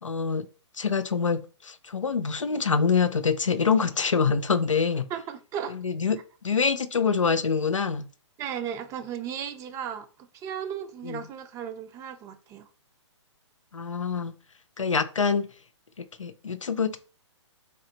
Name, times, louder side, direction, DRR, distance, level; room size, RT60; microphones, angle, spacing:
voice 1, 0.0-0.5 0.8-5.0 5.7-6.2 6.4-8.1 11.0-11.2 13.7-14.3 14.8-15.5 16.0-17.0, left 5 dB, 90° left, 0.6 m, -25 dB
voice 2, 5.1-5.7 8.4-10.1 10.3-12.7, right 8 dB, 20° right, 0.5 m, -35 dB
3.6 x 3.4 x 3.8 m
figure-of-eight pair, 130°, 16 cm